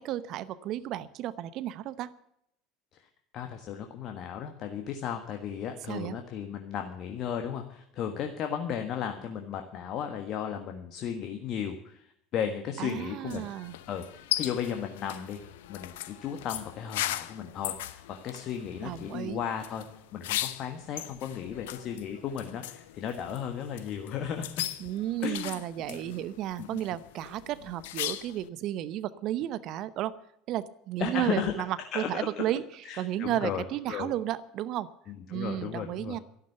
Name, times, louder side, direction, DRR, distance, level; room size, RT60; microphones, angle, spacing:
voice 1, 0.0-2.1 5.9-6.2 12.8-13.8 18.8-19.4 24.8-30.2 30.5-34.9 35.3-36.2, right 12 dB, 55° right, 16 dB, 0.8 m, -33 dB
voice 2, 3.3-12.0 12.3-13.4 13.9-15.4 15.7-19.8 20.1-24.7 25.2-25.6 25.9-26.1 26.6-26.8 31.0-31.5 31.9-32.4 32.8-34.1 35.3-36.2, left 8 dB, 50° left, 5 dB, 1.5 m, -35 dB
sound 1, 13.3-28.5, left 14 dB, 70° left, 0.9 m, -38 dB
13.0 x 11.5 x 6.9 m, 0.74 s
hypercardioid pair, 70°, 0 cm